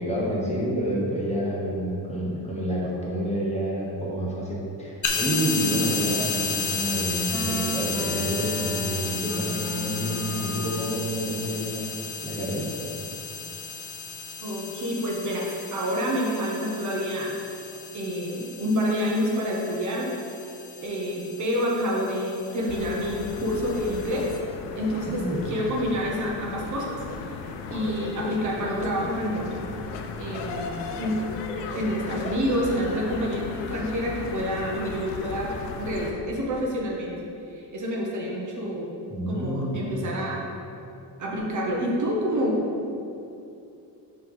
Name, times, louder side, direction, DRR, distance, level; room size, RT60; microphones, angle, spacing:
voice 1, 0.0-12.7 25.0-25.4 39.1-40.0, equal, 15° left, -5 dB, 1.2 m, -29 dB
sound 1, 5.0-24.4, left 5 dB, 45° left, 0.7 m, -33 dB
sound 2, 7.3-11.1, equal, 5° right, 0.4 m, -35 dB
voice 2, 14.4-17.3 17.9-20.1 20.8-24.3 24.7-26.9 27.7-29.6 30.2-31.2 31.7-37.2 37.5-38.9 39.3-40.4 41.2-42.6, equal, 45° right, -2 dB, 1.0 m, -28 dB
sound 3, 22.7-36.1, left 4 dB, 80° left, 0.7 m, -36 dB
5.8 x 3.3 x 5.4 m, 2.6 s
cardioid pair, 135°, 42 cm